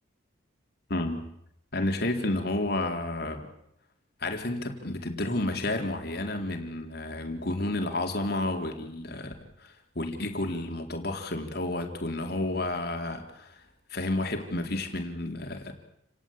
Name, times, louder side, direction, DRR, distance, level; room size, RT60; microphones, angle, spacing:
voice 1, 0.9-1.2 1.7-3.5 4.2-9.3 9.6-13.6 13.9-15.7, left 2 dB, 50° left, 4 dB, 4.0 m, -31 dB
29.5 x 18.5 x 9.1 m, 0.80 s
head